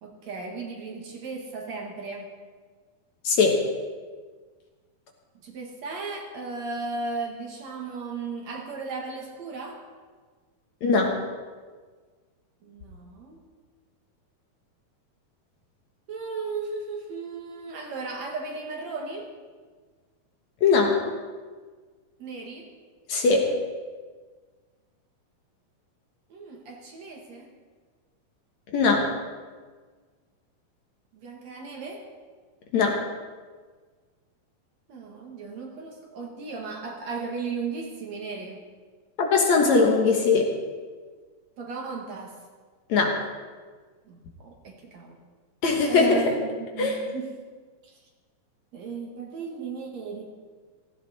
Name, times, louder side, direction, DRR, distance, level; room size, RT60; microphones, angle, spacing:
voice 1, 0.0-2.3 5.3-9.8 12.6-13.4 16.1-19.3 22.2-22.7 26.3-27.5 31.1-32.1 34.9-38.6 41.6-42.4 44.1-45.2 45.9-47.3 47.8-48.0 48.7-50.3, right 4 dB, 55° right, 1 dB, 2.6 m, -36 dB
voice 2, 3.2-3.6 10.8-11.2 20.6-21.0 23.1-23.5 28.7-29.1 32.7-33.0 39.2-40.5 42.9-43.2 45.6-46.2 46.8-47.0, left 4 dB, 60° left, 1 dB, 2.4 m, -20 dB
16.5 x 15.5 x 4.2 m, 1.5 s
omnidirectional pair, 4.0 m